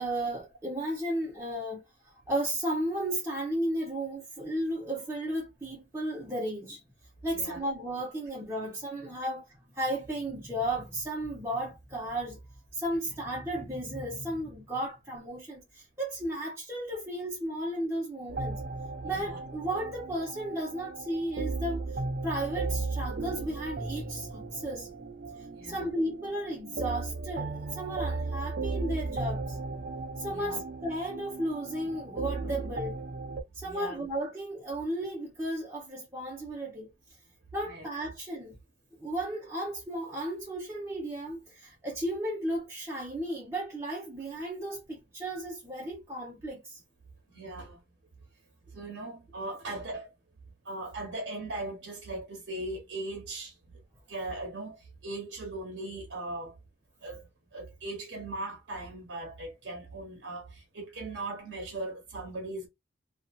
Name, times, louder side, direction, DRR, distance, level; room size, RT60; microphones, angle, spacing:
voice 1, 0.0-1.8 2.3-6.8 7.2-9.5 9.7-12.4 12.7-18.6 19.0-21.9 22.2-24.9 25.6-29.6 30.2-33.0 33.5-36.9 37.5-38.6 39.0-46.8, right 1 dB, 15° right, 0.8 m, -34 dB
sound 1, 18.3-33.4, right 3 dB, 55° right, 0.5 m, -36 dB
voice 2, 19.0-19.4 25.5-25.9 30.3-30.6 33.6-34.1 37.6-37.9 47.3-47.8 48.7-50.1 50.6-53.6 54.1-56.5 57.0-62.7, right 2 dB, 85° right, 0.9 m, -39 dB
2.6 x 2.3 x 2.3 m
head